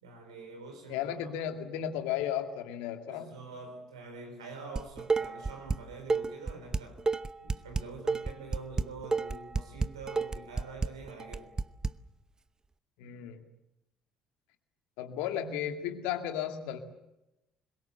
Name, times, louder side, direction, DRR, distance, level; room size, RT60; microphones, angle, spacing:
voice 1, 0.0-1.1 3.1-7.0 7.4-11.5, right 4 dB, 85° right, 4.2 m, -45 dB
voice 2, 0.9-3.4 13.0-13.4 15.0-16.8, left 10 dB, 70° left, 2.2 m, -34 dB
Dishes pots and pans, 4.8-5.8 6.1-11.9, right 4 dB, 25° right, 0.8 m, -30 dB
25.0 x 22.0 x 7.9 m
hypercardioid pair, 55°, 3 cm